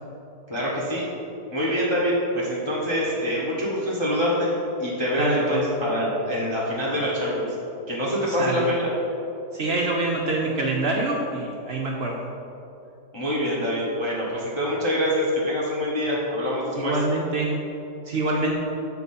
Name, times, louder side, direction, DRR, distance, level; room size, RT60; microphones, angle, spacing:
voice 1, 0.5-1.1 1.5-4.5 4.8-7.5 7.9-8.9 13.1-17.0, equal, 25° left, -6 dB, 0.7 m, -25 dB
voice 2, 5.2-5.7 8.3-8.7 9.5-12.2 16.7-17.5 18.1-18.6, right 2 dB, 60° right, -2 dB, 0.7 m, -26 dB
7.0 x 4.4 x 4.2 m, 2.8 s
omnidirectional pair, 1.7 m